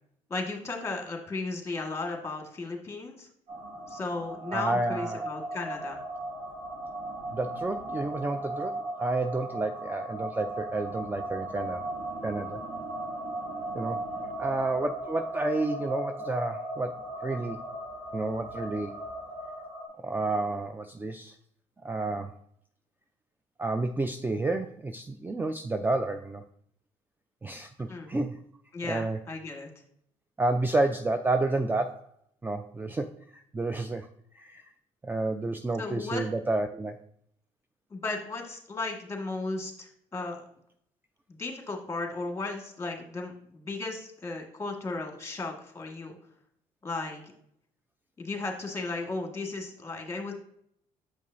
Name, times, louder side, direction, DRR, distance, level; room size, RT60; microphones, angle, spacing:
voice 1, 0.3-3.3 3.9-6.0 27.9-28.1 28.7-29.7 35.8-36.2 37.9-40.4 41.3-46.2 46.8-47.2 48.2-50.3, left 3 dB, 20° left, 2 dB, 1.7 m, -35 dB
sound 1, 3.5-19.9, right 1 dB, 75° right, 2.5 m, -37 dB
voice 2, 4.5-5.2 7.3-11.8 12.2-12.6 13.7-14.0 14.4-17.6 18.1-18.9 20.0-21.3 21.8-22.3 23.6-26.4 27.4-28.4 28.9-29.2 30.4-32.1 32.4-33.1 33.5-34.1 34.4-34.6 35.0-37.0, right 2 dB, 15° right, 7 dB, 0.4 m, -30 dB
7.3 x 5.4 x 2.6 m, 0.67 s
supercardioid pair, 75°, 13 cm